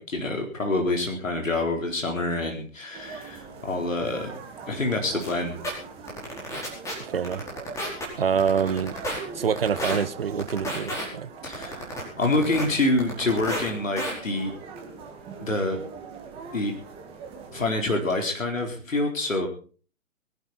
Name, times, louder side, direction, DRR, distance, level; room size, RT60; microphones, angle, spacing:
voice 1, 0.0-4.3 4.7-5.5 11.4-14.5 15.4-15.8 16.5-16.7 17.5-19.5, left 2 dB, 70° left, 4.0 m, -26 dB
sound 1, 2.9-17.8, right 5 dB, 15° right, 1.9 m, -42 dB
sound 2, 5.2-5.3 5.6-5.7 6.1-6.9 7.2-8.0 8.4-9.2 9.6-10.0 10.4-11.0 11.4-12.6 13.0-13.7 14.0-14.1, equal, 5° left, 4.9 m, -31 dB
voice 2, 7.0-7.4 8.2-9.0 9.3-11.3, right 7 dB, 45° right, 0.9 m, -26 dB
22.0 x 11.5 x 4.3 m
figure-of-eight pair, 135°, 41 cm